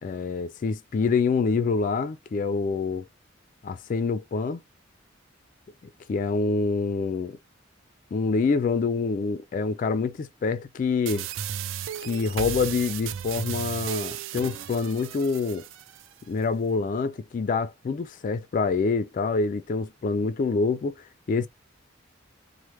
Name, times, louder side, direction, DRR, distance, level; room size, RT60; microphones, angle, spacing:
voice 1, 0.0-3.1 3.6-4.6 6.1-7.4 8.1-11.3 12.0-15.6 16.3-21.5, left 4 dB, 45° left, 0.3 m, -26 dB
sound 1, 11.1-16.1, right 10 dB, 80° right, 0.3 m, -35 dB
3.1 x 2.0 x 3.1 m
head